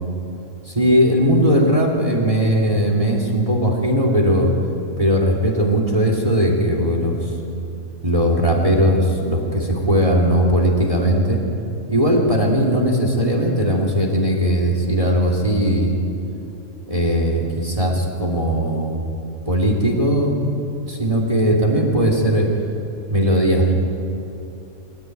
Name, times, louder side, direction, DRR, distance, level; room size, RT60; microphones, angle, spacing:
voice 1, 0.6-4.5 5.0-7.2 8.0-11.4 11.9-16.0 16.9-19.1 19.5-20.6 20.8-22.5 23.1-23.7, equal, 25° right, 1 dB, 2.8 m, -18 dB
23.5 x 16.0 x 9.2 m, 2.7 s
omnidirectional pair, 1.5 m